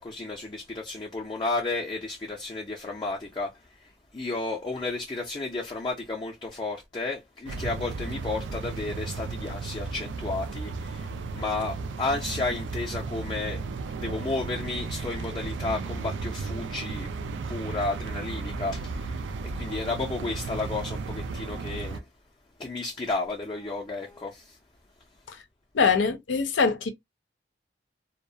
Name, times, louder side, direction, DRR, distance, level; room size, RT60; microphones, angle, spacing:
voice 1, 0.0-3.6 4.1-13.6 14.0-17.1 17.5-22.0 22.6-24.6, left 3 dB, 25° left, 0.4 m, -32 dB
sound 1, 7.5-22.0, right 4 dB, 75° right, 0.3 m, -34 dB
voice 2, 25.7-26.9, left 5 dB, 85° left, 0.6 m, -23 dB
2.3 x 2.1 x 2.6 m
head